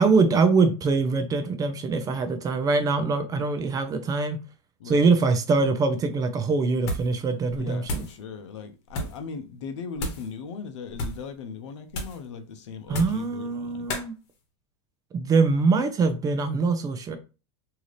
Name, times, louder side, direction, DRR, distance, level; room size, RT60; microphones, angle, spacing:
voice 1, 0.0-4.4 4.9-8.0 12.9-14.1 15.1-17.2, right 4 dB, 25° right, 0.5 m, -23 dB
sound 1, 6.8-7.2 7.5-8.2 8.9-9.2 10.0-10.3 10.9-11.3 11.9-12.3 12.9-13.3 13.9-14.1, left 1 dB, 55° left, 1.1 m, -33 dB
voice 2, 7.5-13.9, left 5 dB, 75° left, 0.6 m, -38 dB
2.8 x 2.4 x 3.2 m
hypercardioid pair, 115°, 15 cm